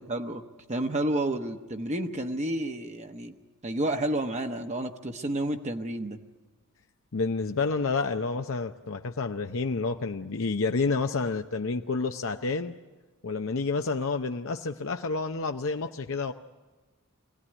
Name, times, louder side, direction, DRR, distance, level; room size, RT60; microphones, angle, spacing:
voice 1, 0.0-3.3 3.6-6.2, right 1 dB, 30° right, 5 dB, 1.0 m, -30 dB
voice 2, 7.1-12.8 13.2-16.3, left 4 dB, 65° left, 6 dB, 0.7 m, -29 dB
24.5 x 17.0 x 9.8 m, 1.3 s
head